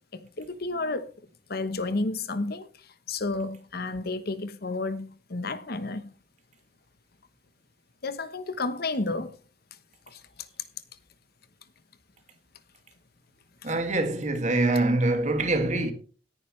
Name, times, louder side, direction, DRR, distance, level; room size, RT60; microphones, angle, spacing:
voice 1, 0.1-1.1 1.5-6.1 8.0-9.4 10.1-10.2 13.6-13.7, left 3 dB, 55° left, 1.1 m, -31 dB
voice 2, 13.6-15.9, right 2 dB, 40° right, 2.3 m, -24 dB
17.5 x 10.0 x 3.3 m
head